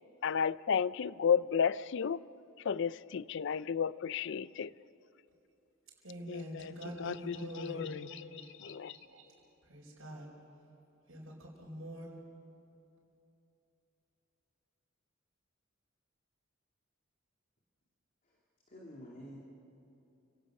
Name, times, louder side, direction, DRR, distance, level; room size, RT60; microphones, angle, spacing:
voice 1, 0.2-2.2 2.6-4.7 6.3-6.7 7.0-9.0, left 7 dB, 60° left, 18 dB, 0.4 m, -33 dB
voice 2, 6.0-9.3 9.6-10.3 11.1-12.2, right 1 dB, 80° right, -4 dB, 4.6 m, -46 dB
voice 3, 18.7-19.4, equal, 45° left, -4 dB, 2.8 m, -49 dB
29.0 x 17.0 x 6.5 m, 2.8 s
head